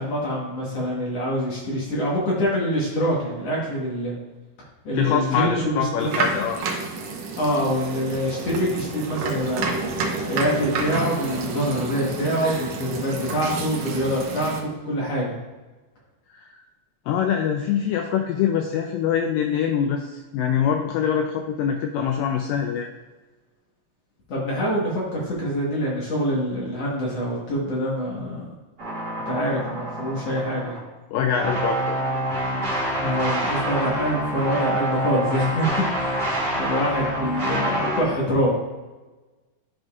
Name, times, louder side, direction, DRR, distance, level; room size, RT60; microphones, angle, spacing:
voice 1, 0.0-4.2 4.8-6.2 7.4-9.8 10.3-15.4 24.3-28.5 29.3-30.8 33.0-36.3 36.6-38.5, equal, 55° left, -4 dB, 1.9 m, -25 dB
voice 2, 4.9-6.6 16.3-16.6 17.1-22.9 31.1-32.0, left 8 dB, 80° left, 4 dB, 2.0 m, -24 dB
sound 1, 6.0-14.6, right 4 dB, 75° right, 1.5 m, -29 dB
sound 2, 28.8-30.8 31.4-38.0, right 1 dB, 35° right, 2.1 m, -26 dB
11.5 x 5.2 x 2.4 m, 1.2 s
omnidirectional pair, 4.3 m